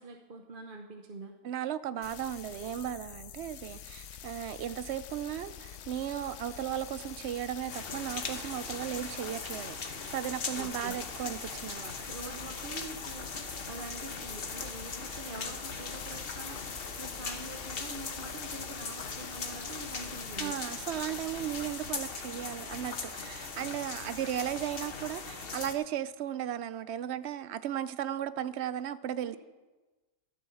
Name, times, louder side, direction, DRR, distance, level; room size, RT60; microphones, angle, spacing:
voice 1, 0.0-1.3 10.6-11.0 12.0-20.6 29.2-29.4, right 3 dB, 45° right, 1.0 m, -45 dB
voice 2, 1.4-12.0 20.4-29.4, right 10 dB, 65° right, 0.8 m, -36 dB
sound 1, 2.0-21.9, left 9 dB, 70° left, 0.9 m, -47 dB
sound 2, 7.7-25.7, left 4 dB, 50° left, 1.2 m, -40 dB
12.5 x 7.8 x 6.9 m
omnidirectional pair, 1.3 m